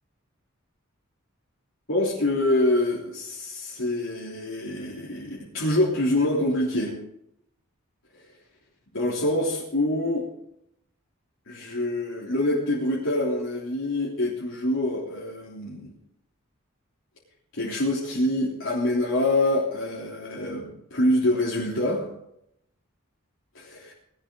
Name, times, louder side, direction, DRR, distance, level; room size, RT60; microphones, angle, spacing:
voice 1, 1.9-7.0 8.9-10.2 11.5-15.9 17.5-22.1 23.5-23.9, left 1 dB, 75° left, -6 dB, 3.4 m, -25 dB
19.5 x 12.0 x 3.9 m, 0.78 s
head